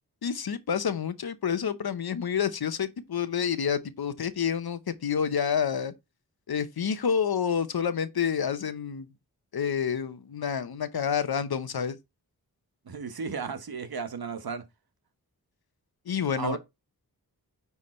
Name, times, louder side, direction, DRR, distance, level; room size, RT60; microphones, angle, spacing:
voice 1, 0.2-5.9 6.5-9.1 9.5-12.0 16.1-16.6, left 7 dB, 85° left, 0.9 m, -28 dB
voice 2, 12.9-14.6 16.4-16.6, right 5 dB, 75° right, 1.3 m, -34 dB
9.8 x 3.6 x 4.4 m
cardioid pair, 50°, 37 cm